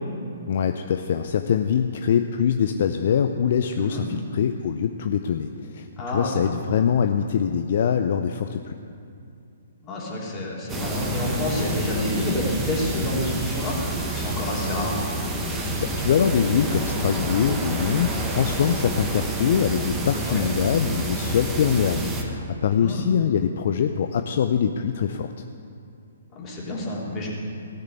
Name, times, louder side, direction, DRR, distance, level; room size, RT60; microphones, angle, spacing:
voice 1, 0.5-8.7 15.8-25.4, left 7 dB, 55° left, 7 dB, 0.6 m, -23 dB
voice 2, 6.0-6.6 9.8-15.0 20.3-20.4 22.8-23.1 26.3-27.3, left 1 dB, 25° left, -4 dB, 3.5 m, -28 dB
sound 1, 10.7-22.2, right 1 dB, 15° right, 1.5 m, -28 dB
17.0 x 6.6 x 8.4 m, 2.6 s
figure-of-eight pair, 125°, 0 cm